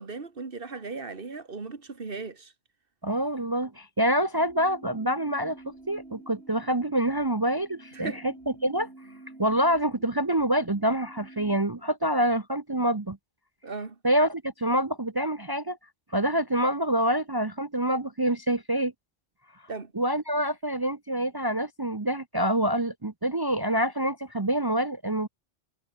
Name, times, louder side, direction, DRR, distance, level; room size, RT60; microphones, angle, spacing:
voice 1, 0.0-2.5 7.9-8.2 13.6-14.0 19.7-19.9, right 4 dB, 50° right, 2.2 m, -37 dB
voice 2, 3.0-8.3 8.6-8.9 9.4-13.2 14.0-15.8 16.1-18.9 19.9-25.3, right 1 dB, 20° right, 0.9 m, -26 dB
sound 1, 4.4-11.6, right 2 dB, 65° right, 4.5 m, -49 dB
omnidirectional pair, 1.2 m